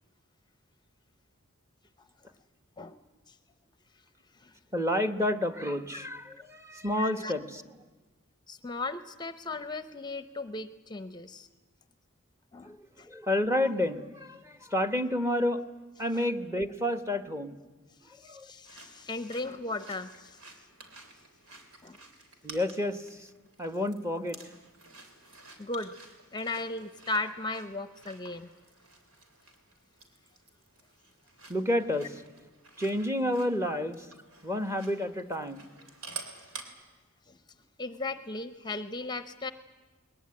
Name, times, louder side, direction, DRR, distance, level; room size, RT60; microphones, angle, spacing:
voice 1, 4.7-7.6 12.6-12.8 13.1-15.6 16.0-17.6 18.3-18.5 22.4-23.3 23.6-24.4 31.5-32.1 32.8-34.0 34.4-35.7, left 1 dB, 15° right, 9 dB, 1.1 m, -30 dB
voice 2, 7.0-7.3 8.5-11.5 12.5-13.1 16.1-16.2 18.0-20.7 21.8-22.0 25.6-26.0 26.3-28.5 36.1-36.2 37.3-37.4 37.8-39.5, left 2 dB, 20° left, 12 dB, 0.7 m, -37 dB
sound 1, 18.6-36.6, right 3 dB, 90° right, 3.3 m, -50 dB
21.0 x 20.5 x 9.7 m, 1.2 s
head